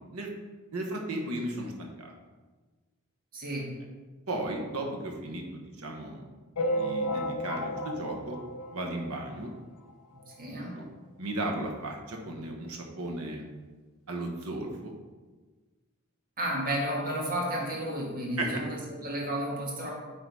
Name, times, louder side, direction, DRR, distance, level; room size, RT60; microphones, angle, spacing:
voice 1, 0.7-2.1 4.3-6.2 6.7-8.4 8.7-9.5 10.7-10.9 11.2-13.4 14.1-14.9 18.4-18.6, right 1 dB, 85° right, 1 dB, 1.2 m, -35 dB
voice 2, 3.3-3.7 10.3-10.8 16.4-19.9, right 1 dB, 40° right, -2 dB, 1.7 m, -32 dB
sound 1, 6.6-9.4 9.9-10.0 10.2-10.3 10.6-10.7 11.6-11.7 12.1-12.2, equal, 75° left, 0.7 m, -33 dB
8.0 x 3.9 x 4.7 m, 1.3 s
head